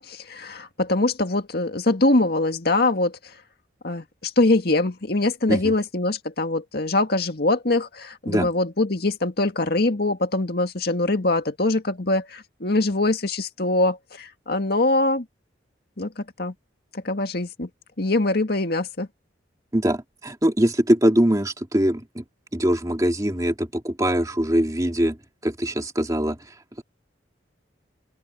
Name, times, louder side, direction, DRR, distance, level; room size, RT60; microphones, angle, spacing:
voice 1, 0.0-3.2 3.8-15.3 16.0-16.5 16.9-17.7 18.0-19.1, left 2 dB, 55° left, 2.0 m, -23 dB
voice 2, 19.7-22.2 22.5-25.2 25.4-26.4, equal, 20° right, 2.0 m, -22 dB
open air
head